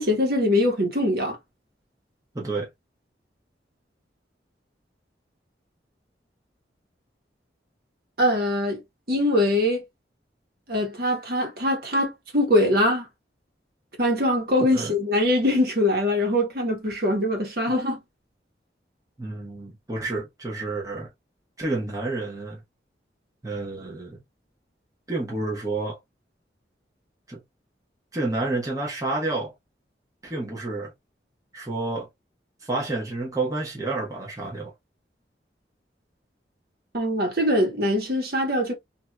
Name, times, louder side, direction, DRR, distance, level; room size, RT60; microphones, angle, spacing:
voice 1, 0.0-1.4 8.2-8.8 9.1-9.8 10.7-13.1 14.0-18.0 36.9-38.7, left 1 dB, 60° right, 1.3 m, -22 dB
voice 2, 2.3-2.7 14.7-14.9 19.2-21.1 21.6-22.6 23.4-24.2 25.1-26.0 27.3-27.4 28.1-29.5 30.2-30.9 31.5-32.1 32.6-34.7, right 2 dB, 20° right, 0.9 m, -29 dB
3.3 x 2.7 x 2.2 m
head